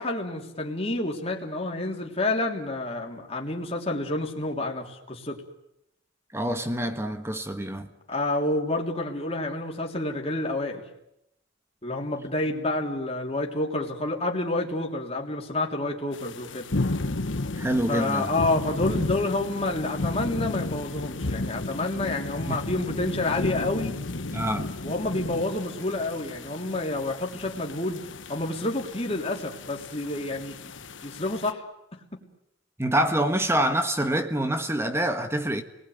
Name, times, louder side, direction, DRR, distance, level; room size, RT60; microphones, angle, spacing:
voice 1, 0.0-5.4 8.1-10.8 11.8-16.7 17.9-23.9 24.8-28.0 28.3-30.7 31.0-31.7 31.9-32.2, left 2 dB, 30° left, 3.4 m, -29 dB
voice 2, 6.3-7.9 17.5-18.3 22.5-22.6 24.3-24.7 32.8-35.6, right 1 dB, 15° right, 1.5 m, -26 dB
sound 1, 16.1-31.5, left 2 dB, 80° left, 1.2 m, -33 dB
29.5 x 20.0 x 9.4 m
head